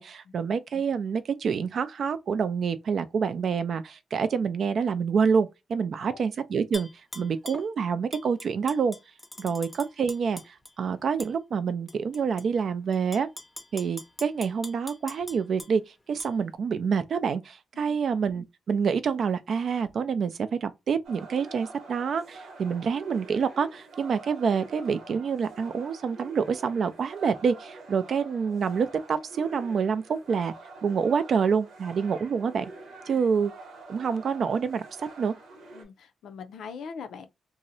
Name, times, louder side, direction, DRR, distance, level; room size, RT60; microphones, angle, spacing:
voice 1, 0.0-6.9 7.2-9.0 9.4-13.3 13.7-30.5 30.8-32.7 33.1-33.5 33.9-35.3, right 6 dB, 65° right, 0.3 m, -27 dB
Tap / Glass, 6.7-7.7 8.1-10.7 11.2-11.3 11.9-12.4 12.9-15.7 16.2-16.3, left 1 dB, 10° left, 0.5 m, -42 dB
sound 1, 21.0-35.8, right 3 dB, 80° right, 0.9 m, -46 dB
voice 2, 35.7-37.3, left 6 dB, 80° left, 0.4 m, -42 dB
2.6 x 2.0 x 2.5 m
cardioid pair, 90°, 0 cm